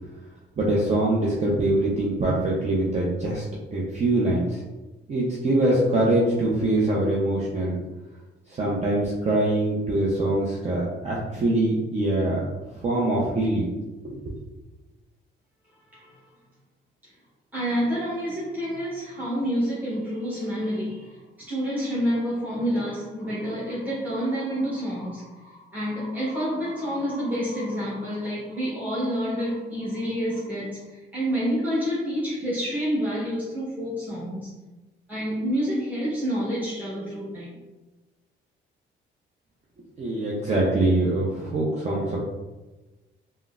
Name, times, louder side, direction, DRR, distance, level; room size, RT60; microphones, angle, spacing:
voice 1, 0.6-3.4 3.7-4.6 5.1-7.7 8.5-12.4 12.7-13.7 14.0-14.2 40.0-42.2, right 1 dB, 35° right, -5 dB, 0.6 m, -23 dB
voice 2, 17.5-34.5 35.1-37.6, equal, 10° right, -9 dB, 1.0 m, -28 dB
3.7 x 2.1 x 2.3 m, 1.1 s
cardioid pair, 90°, 20 cm